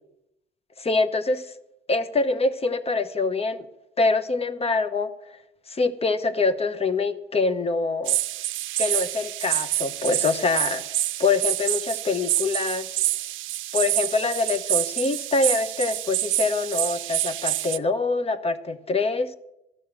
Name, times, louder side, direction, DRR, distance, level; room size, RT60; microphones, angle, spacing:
voice 1, 0.8-1.5 1.9-3.7 4.0-5.1 5.7-8.2 8.8-10.9 11.2-12.9 13.7-19.3, left 3 dB, 30° left, 0.9 m, -25 dB
sound 1, 8.1-17.8, right 15 dB, 80° right, 0.5 m, -27 dB
12.5 x 6.3 x 9.0 m
cardioid pair, 90°, 20 cm